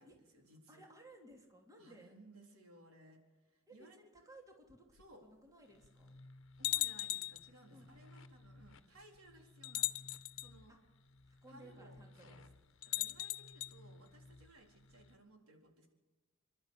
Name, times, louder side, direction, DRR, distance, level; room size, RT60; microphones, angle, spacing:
voice 1, 0.0-0.8 1.8-4.0 4.9-5.2 6.6-10.0 10.4-10.7 11.5-12.4 12.8-15.9, right 1 dB, 85° right, 2 dB, 4.1 m, -61 dB
voice 2, 0.7-2.2 3.7-4.9 5.2-6.2 7.7-7.9 10.7-10.8 11.2-12.4, right 1 dB, 15° right, 2 dB, 2.9 m, -59 dB
sound 1, 5.0-5.1 5.8-5.9 6.6-7.5 8.6-8.7 9.6-10.5 12.8-13.7, left 17 dB, 80° left, 0.6 m, -38 dB
sound 2, 5.6-15.2, left 2 dB, 65° left, 1.1 m, -60 dB
28.0 x 12.0 x 8.4 m, 1.2 s
head